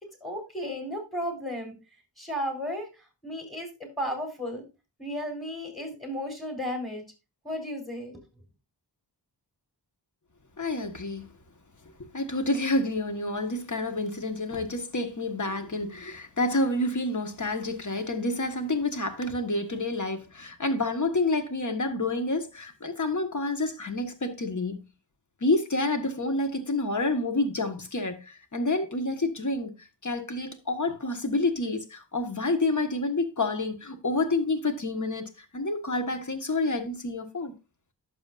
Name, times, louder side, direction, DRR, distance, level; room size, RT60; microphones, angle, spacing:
voice 1, 0.2-1.7 2.2-2.9 3.2-4.6 5.0-7.0 7.4-8.2, equal, ahead, 4.4 m, -34 dB
voice 2, 10.6-11.3 12.1-24.8 25.4-29.7 30.0-37.5, left 2 dB, 45° left, 1.6 m, -28 dB
11.5 x 7.0 x 2.6 m
wide cardioid pair, 80°, 42 cm